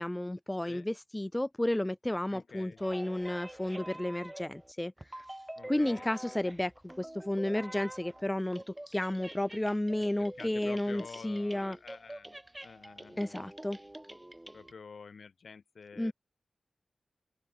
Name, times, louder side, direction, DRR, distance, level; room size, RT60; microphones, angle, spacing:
voice 1, 0.0-5.2 5.7-11.8 13.2-13.8 16.0-16.1, left 1 dB, 10° left, 0.7 m, -32 dB
voice 2, 2.3-2.8 5.6-6.4 10.2-12.3 12.6-13.5 14.5-16.1, left 5 dB, 65° left, 3.4 m, -49 dB
sound 1, 2.8-4.7 5.0-8.2 8.5-14.7, right 1 dB, 10° right, 2.0 m, -47 dB
open air
wide cardioid pair, 130°, 0 cm